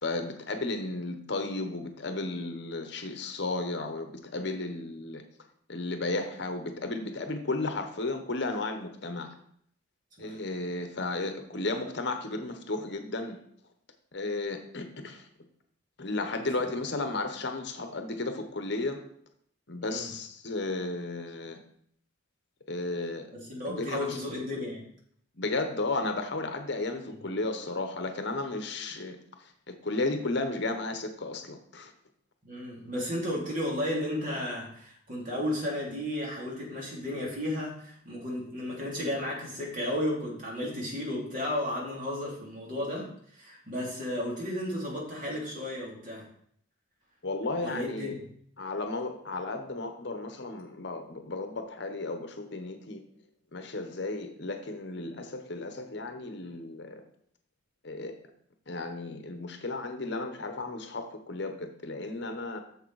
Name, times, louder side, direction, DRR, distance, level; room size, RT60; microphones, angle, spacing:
voice 1, 0.0-5.2 5.7-9.3 10.2-13.4 14.1-15.3 16.0-19.0 19.7-21.6 22.7-23.3 23.6-24.2 25.4-31.9 47.2-48.1 48.6-53.0 53.5-57.0 57.8-58.1 58.7-62.6, left 2 dB, 60° left, 6 dB, 1.0 m, -34 dB
voice 2, 19.8-20.1 23.5-24.8 27.1-27.2 32.4-46.2 47.6-48.1, left 1 dB, 40° right, -3 dB, 2.9 m, -33 dB
6.8 x 6.7 x 4.7 m, 0.66 s
head